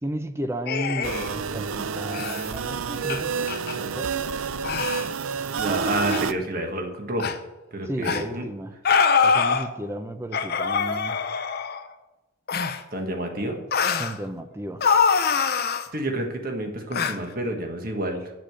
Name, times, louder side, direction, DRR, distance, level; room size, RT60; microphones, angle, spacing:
voice 1, 0.0-3.5 3.8-4.1 7.9-8.7 9.2-11.2 14.0-14.8, right 1 dB, 15° right, 9 dB, 0.6 m, -33 dB
sound 1, 0.7-1.3 2.1-2.5 3.1-3.2 3.5-3.7 4.6-5.1 6.1-6.2 7.2-7.3 8.0-8.2 8.8-9.7 10.3-11.8 12.5-12.8 13.7-14.1 14.8-15.9 16.9-17.1, left 5 dB, 50° left, 0.7 m, -23 dB
sound 2, 1.0-6.3, right 6 dB, 90° right, 0.5 m, -29 dB
voice 2, 5.5-7.3 7.7-8.4 12.9-13.6 15.9-18.3, right 1 dB, 45° right, 4 dB, 1.5 m, -29 dB
7.7 x 6.7 x 7.6 m, 1.0 s
head